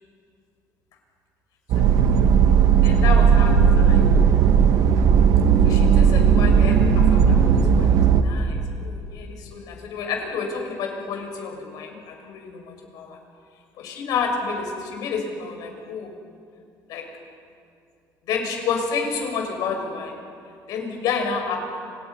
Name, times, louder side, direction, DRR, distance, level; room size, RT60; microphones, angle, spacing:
sound 1, 1.7-8.2, right 7 dB, 65° right, 1.5 m, -16 dB
voice 1, 2.8-4.5 5.6-13.2 13.8-16.1 16.9-17.1 18.3-20.1 20.7-21.6, left 5 dB, 75° left, 2 dB, 6.0 m, -30 dB
29.5 x 28.5 x 5.8 m, 2.4 s
cardioid pair, 165°, 7 cm